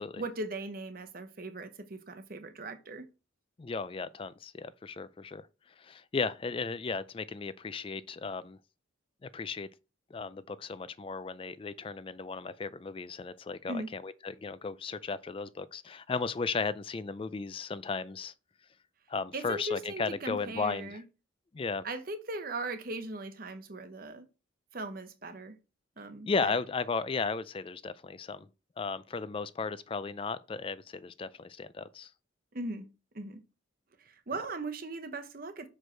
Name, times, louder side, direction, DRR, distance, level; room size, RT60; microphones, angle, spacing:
voice 1, 0.2-3.1 13.7-13.9 19.3-21.0 21.8-24.3 24.7-25.6 26.0-26.6 32.5-32.9 33.1-33.4 34.0-35.7, right 2 dB, 45° right, 0.9 m, -39 dB
voice 2, 3.6-5.5 5.8-8.6 9.2-9.7 10.1-18.3 19.1-21.0 21.5-21.9 26.3-28.5 28.8-32.1, left 4 dB, 25° left, 0.3 m, -35 dB
6.3 x 4.9 x 4.4 m
head